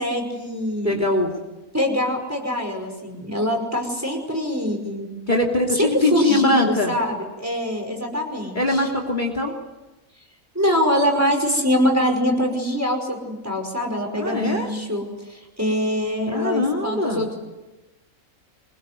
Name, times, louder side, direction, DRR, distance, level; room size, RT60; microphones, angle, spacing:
voice 1, 0.0-1.0 1.7-5.1 5.8-8.9 10.5-17.4, equal, 10° right, 2 dB, 5.5 m, -24 dB
voice 2, 0.8-1.3 5.3-6.9 8.5-9.5 14.2-14.7 16.3-17.2, left 2 dB, 30° left, 1 dB, 3.0 m, -22 dB
26.0 x 21.5 x 9.7 m, 1.1 s
omnidirectional pair, 1.5 m